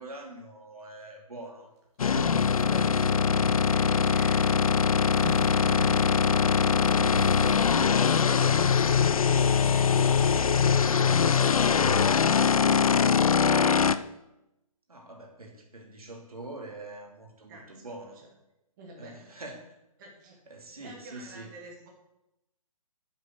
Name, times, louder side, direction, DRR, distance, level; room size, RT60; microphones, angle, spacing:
voice 1, 0.0-1.7 2.3-3.2 14.9-18.2 19.0-19.8 20.5-21.5, right 2 dB, 85° right, 0 dB, 2.8 m, -44 dB
sound 1, 2.0-14.0, left 6 dB, 70° left, 0.6 m, -22 dB
sound 2, 2.0-2.9 3.3-3.6 3.9-4.4 5.1-6.0 6.9-7.3, equal, 50° right, 3.0 m, -37 dB
voice 2, 2.6-4.7 5.4-8.7 9.2-14.0 17.5-17.9 18.8-19.4 20.0-20.4 20.8-21.9, right 2 dB, 35° right, -1 dB, 2.5 m, -47 dB
8.3 x 7.5 x 6.4 m, 0.90 s
figure-of-eight pair, 145°, 19 cm